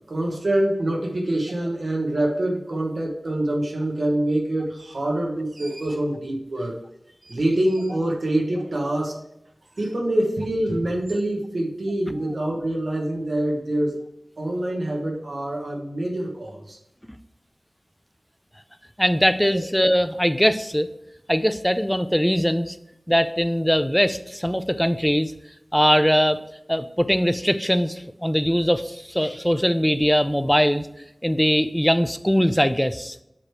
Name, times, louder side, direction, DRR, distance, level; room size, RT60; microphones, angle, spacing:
voice 1, 0.1-6.8 7.2-9.2 9.8-14.0 14.4-16.8 19.5-19.6, right 1 dB, 80° right, -1 dB, 1.1 m, -25 dB
voice 2, 19.0-20.9 21.3-22.8 23.1-25.3 25.7-26.4 26.7-30.9 31.2-33.2, equal, 5° left, 11 dB, 0.4 m, -21 dB
7.4 x 3.2 x 4.6 m, 0.83 s
wide cardioid pair, 50°, 0 cm